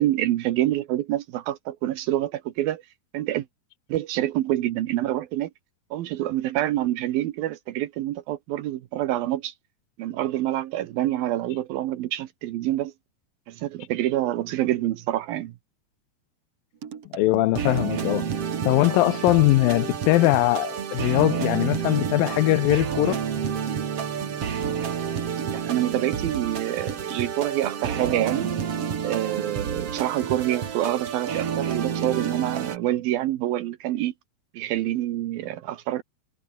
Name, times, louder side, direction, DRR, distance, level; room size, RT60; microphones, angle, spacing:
voice 1, 0.0-2.8 3.1-3.5 3.9-5.5 5.9-9.5 10.0-12.9 13.5-15.5 25.5-28.5 29.0-34.1 34.5-36.0, right 14 dB, 75° right, 2.8 m, -26 dB
sound 1, 16.8-32.8, right 7 dB, 45° right, 2.8 m, -29 dB
voice 2, 17.1-18.3 18.6-23.2, left 18 dB, 80° left, 2.4 m, -21 dB
omnidirectional pair, 4.3 m